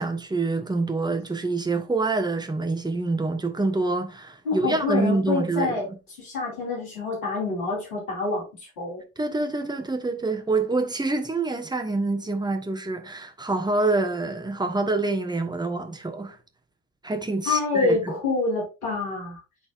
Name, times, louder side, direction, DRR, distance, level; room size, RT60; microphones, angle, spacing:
voice 1, 0.0-5.8 9.2-16.4 17.0-18.1, right 3 dB, 10° right, 1.3 m, -26 dB
voice 2, 4.4-5.9 6.2-9.0 17.5-19.4, left 3 dB, 75° left, 4.0 m, -27 dB
12.0 x 4.0 x 2.5 m
figure-of-eight pair, 50°, 44 cm